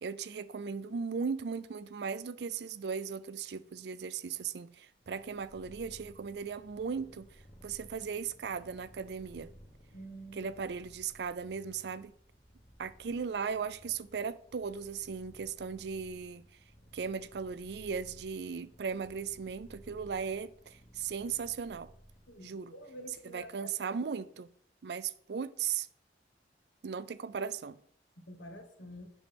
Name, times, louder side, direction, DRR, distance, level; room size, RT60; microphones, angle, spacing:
voice 1, 0.0-7.3 7.6-9.5 10.3-12.1 12.8-16.4 16.9-21.9 22.4-22.7 23.3-24.5 24.8-25.9 26.8-27.8, right 6 dB, 65° right, 0.4 m, -37 dB
Purr, 4.9-22.6, equal, 45° left, 2.0 m, -58 dB
voice 2, 9.9-10.5 22.3-23.8 28.2-29.1, equal, 90° left, 1.5 m, -48 dB
9.1 x 6.4 x 3.5 m
head